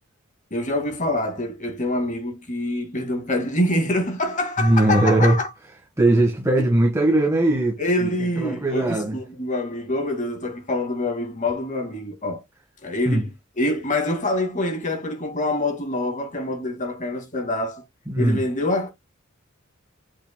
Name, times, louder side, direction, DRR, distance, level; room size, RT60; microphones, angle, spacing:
voice 1, 0.5-5.5 6.6-6.7 7.8-12.4 12.8-17.8 18.2-18.9, left 1 dB, 35° left, 2.2 m, -25 dB
voice 2, 4.6-5.4 6.0-9.2 13.0-13.2 18.1-18.4, right 1 dB, 15° right, 1.5 m, -20 dB
8.0 x 6.0 x 2.3 m
head